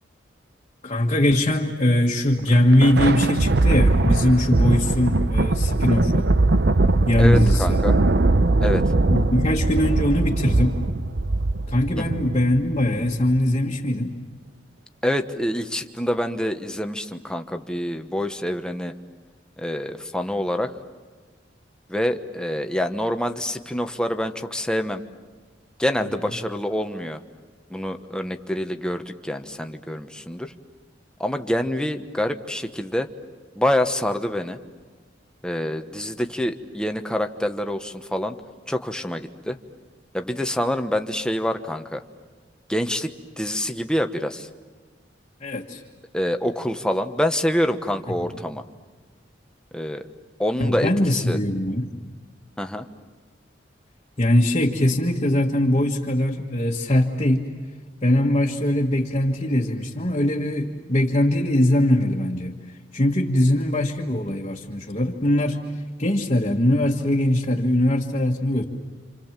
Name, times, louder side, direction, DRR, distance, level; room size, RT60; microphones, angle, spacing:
voice 1, 0.8-6.2 7.1-7.8 9.1-10.8 11.7-14.2 26.0-26.1 45.4-45.8 48.2-48.3 50.6-51.9 54.2-57.5 58.0-68.6, left 1 dB, 35° left, -2 dB, 1.7 m, -21 dB
Thunder, 2.4-13.1, right 2 dB, 65° right, 0.8 m, -21 dB
voice 2, 7.2-7.9 8.6-8.8 12.0-12.1 15.0-18.9 19.6-20.7 21.9-25.0 25.8-27.2 27.7-30.5 31.2-33.1 33.6-34.6 35.4-38.4 38.7-39.6 40.1-42.0 42.7-43.1 43.4-44.5 46.1-48.6 49.7-50.1 50.4-51.4 52.6-52.9, equal, 5° left, 6 dB, 1.1 m, -26 dB
29.0 x 27.5 x 7.4 m, 1.4 s
head